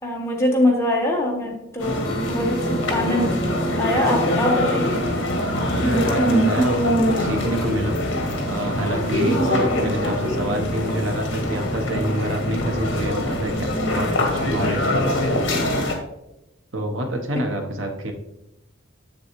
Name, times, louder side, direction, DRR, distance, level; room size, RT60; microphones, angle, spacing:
voice 1, 0.0-2.5 2.9-3.4 3.8-5.0 17.3-17.4, left 1 dB, 15° left, -1 dB, 1.3 m, -23 dB
sound 1, 1.8-15.9, equal, 65° left, 1.4 m, -23 dB
sound 2, 1.8-8.3, equal, 30° left, 1.1 m, -36 dB
voice 2, 5.7-7.9 8.5-15.6 16.7-18.1, right 1 dB, 70° right, 3 dB, 1.0 m, -27 dB
7.7 x 7.0 x 3.1 m, 0.88 s
head